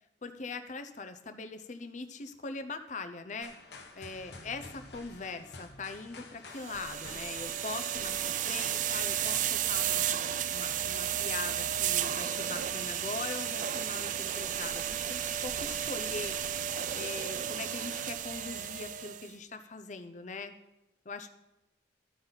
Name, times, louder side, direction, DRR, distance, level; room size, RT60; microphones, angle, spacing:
voice 1, 0.2-3.5 3.9-16.4 16.9-20.5 21.1-21.3, left 4 dB, 45° left, 9 dB, 0.6 m, -41 dB
sound 1, 3.4-9.3, left 3 dB, 65° left, 1.0 m, -50 dB
sound 2, 6.6-19.3, right 9 dB, 45° right, 0.3 m, -33 dB
14.0 x 5.7 x 4.0 m, 0.90 s
head